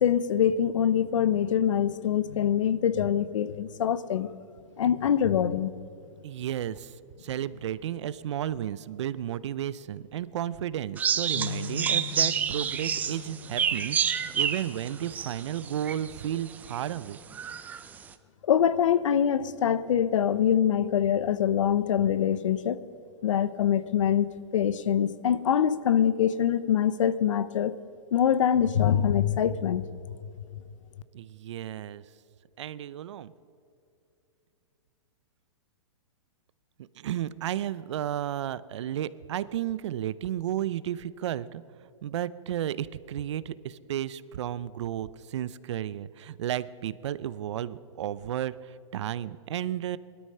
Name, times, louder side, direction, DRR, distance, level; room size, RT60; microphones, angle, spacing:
voice 1, 0.0-4.3 4.8-5.7 18.5-22.8 23.2-27.7 28.1-29.8, left 9 dB, 70° left, 16 dB, 0.8 m, -24 dB
voice 2, 6.2-6.9 7.2-17.2 31.1-32.0 32.6-33.3 37.0-41.6 42.0-50.0, right 11 dB, 60° right, 17 dB, 0.6 m, -33 dB
sound 1, 11.0-16.2 16.7-16.8 17.3-17.8, right 8 dB, 10° right, 0.4 m, -28 dB
sound 2, 11.4-15.6 16.1-16.3 17.2-17.6, left 11 dB, 35° left, 0.8 m, -43 dB
19.0 x 13.0 x 5.6 m, 2.7 s
hypercardioid pair, 155°, 17 cm